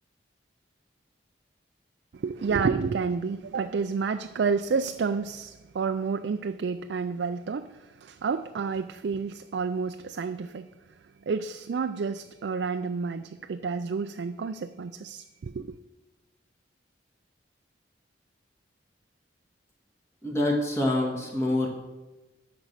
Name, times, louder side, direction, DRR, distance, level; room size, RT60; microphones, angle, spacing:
voice 1, 2.1-10.7 11.3-15.7, right 5 dB, 75° right, 0.4 m, -30 dB
voice 2, 20.2-21.7, left 1 dB, 15° left, 1.9 m, -26 dB
10.5 x 6.0 x 6.6 m
head